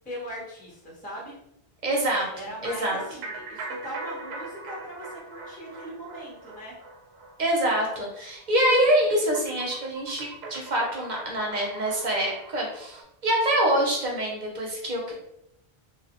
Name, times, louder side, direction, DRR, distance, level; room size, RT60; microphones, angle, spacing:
voice 1, 0.0-1.3 2.3-6.7, equal, 10° left, -5 dB, 0.6 m, -39 dB
voice 2, 1.8-2.3 2.6-3.0 7.4-15.1, right 1 dB, 55° right, -1 dB, 0.7 m, -25 dB
sound 1, 3.0-13.0, right 3 dB, 85° right, 0.8 m, -41 dB
2.5 x 2.0 x 2.8 m, 0.80 s
omnidirectional pair, 1.1 m